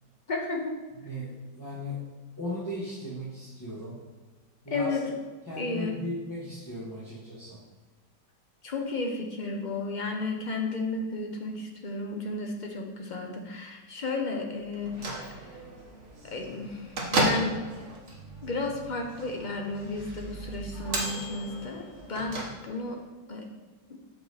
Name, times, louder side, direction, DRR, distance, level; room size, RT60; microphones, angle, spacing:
voice 1, 0.3-0.8 4.7-5.0 5.6-6.0 8.6-15.5 16.2-17.6 18.4-23.0 23.3-23.4 23.9-24.0, left 3 dB, 40° left, 2 dB, 0.7 m, -33 dB
voice 2, 1.0-2.0 2.4-4.0 4.6-5.0 5.5-7.6, equal, 10° left, -9 dB, 1.4 m, -36 dB
Bell / Microwave oven, 14.7-23.0, right 2 dB, 45° right, 1.5 m, -34 dB
7.1 x 5.4 x 4.2 m, 1.3 s
omnidirectional pair, 1.9 m